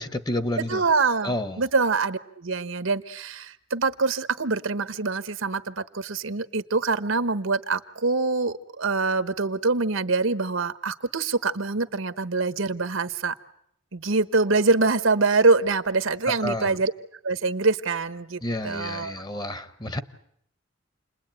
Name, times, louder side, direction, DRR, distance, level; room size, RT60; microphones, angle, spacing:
voice 1, 0.0-0.8 1.2-1.6 16.3-16.8 18.4-20.0, left 1 dB, 20° left, 12 dB, 1.0 m, -30 dB
voice 2, 0.6-13.3 13.9-16.9 17.2-19.2, right 3 dB, 80° right, 12 dB, 1.1 m, -25 dB
29.0 x 21.0 x 8.9 m, 0.74 s
head